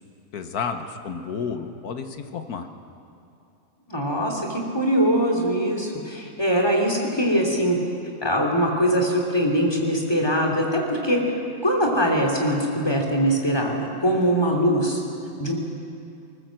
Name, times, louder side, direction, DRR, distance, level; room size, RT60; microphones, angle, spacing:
voice 1, 0.3-2.7, left 6 dB, 70° left, 7 dB, 1.6 m, -31 dB
voice 2, 3.9-7.8 8.2-11.3 11.6-15.0 15.4-15.6, equal, 15° left, 0 dB, 3.1 m, -22 dB
20.0 x 19.5 x 7.7 m, 2.6 s
omnidirectional pair, 1.7 m